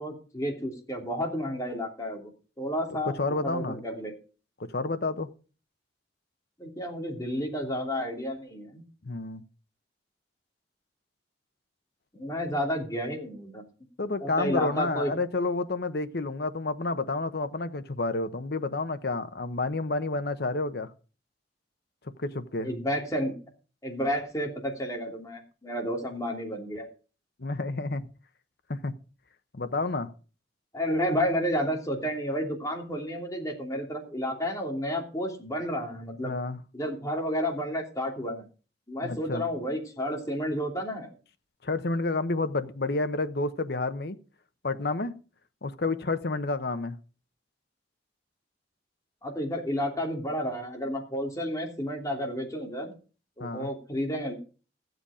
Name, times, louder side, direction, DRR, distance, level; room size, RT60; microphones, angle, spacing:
voice 1, 0.0-2.3 2.6-3.1 3.4-4.1 6.6-8.8 12.1-13.6 14.2-15.1 22.6-23.3 23.8-26.8 30.7-36.3 36.7-38.4 38.9-41.1 49.2-52.9 53.4-54.3, equal, 20° left, 2.9 m, -31 dB
voice 2, 3.1-3.8 4.7-5.3 9.0-9.4 14.0-20.9 22.2-22.7 27.4-28.1 28.7-28.9 29.5-30.1 36.2-36.6 39.0-39.4 41.6-44.2 44.6-45.1 45.6-47.0 53.4-53.7, left 3 dB, 65° left, 1.0 m, -30 dB
14.5 x 8.1 x 4.9 m
head